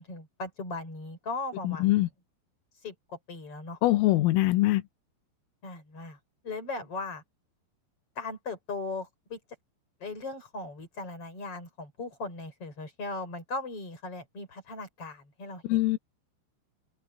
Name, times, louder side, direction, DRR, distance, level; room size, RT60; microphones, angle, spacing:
voice 1, 0.0-1.9 2.8-3.8 5.6-6.2 6.4-7.2 8.2-9.4 10.0-15.8, left 3 dB, 30° left, 7.1 m, -38 dB
voice 2, 1.6-2.1 3.8-4.8 15.7-16.0, left 17 dB, 90° left, 3.8 m, -23 dB
open air
omnidirectional pair, 5.7 m